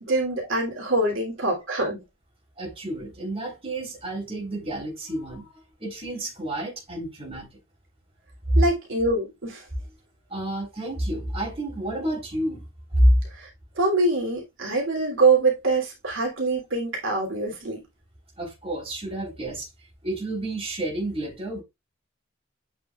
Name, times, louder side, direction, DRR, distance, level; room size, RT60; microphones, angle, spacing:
voice 1, 0.0-2.0 8.5-9.6 13.3-13.5 13.8-17.8, right 3 dB, 75° right, 3.1 m, -24 dB
voice 2, 2.6-7.5 8.5-8.6 10.3-12.7 12.9-13.1 18.4-19.7 20.0-21.6, right 1 dB, 30° right, 3.8 m, -28 dB
8.4 x 6.0 x 2.4 m
head